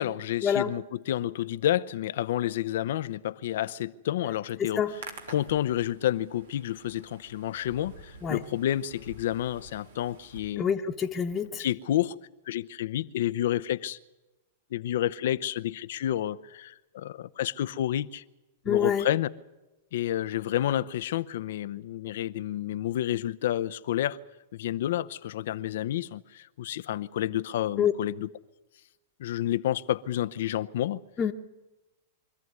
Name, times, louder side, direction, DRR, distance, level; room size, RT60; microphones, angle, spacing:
voice 1, 0.0-5.0 5.3-10.7 11.6-12.1 12.5-14.0 14.7-18.2 18.6-19.3 19.9-24.2 24.5-28.3 29.2-31.0, left 12 dB, 70° left, 0.8 m, -30 dB
Hands, 4.7-10.4, right 3 dB, 80° right, 3.3 m, -49 dB
voice 2, 10.6-11.6 18.7-19.1 27.8-27.9 31.2-31.3, left 8 dB, 25° left, 1.2 m, -26 dB
24.5 x 14.0 x 9.6 m
hypercardioid pair, 115°, 0 cm